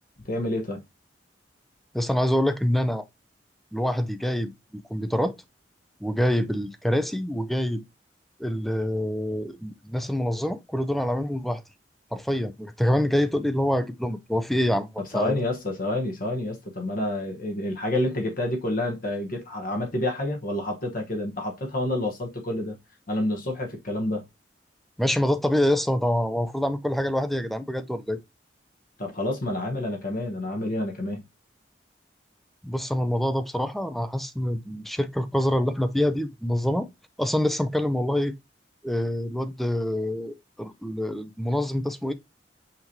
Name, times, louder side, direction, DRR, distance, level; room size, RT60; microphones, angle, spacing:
voice 1, 0.3-0.8 15.1-22.8 23.1-24.2 29.0-31.2, left 1 dB, 50° left, 1.1 m, -28 dB
voice 2, 1.9-3.1 3.7-5.4 6.0-7.8 8.4-11.6 12.1-15.4 25.0-28.2 32.6-36.9 37.2-38.3 38.8-42.1, left 1 dB, ahead, 0.4 m, -26 dB
5.8 x 3.0 x 2.7 m
head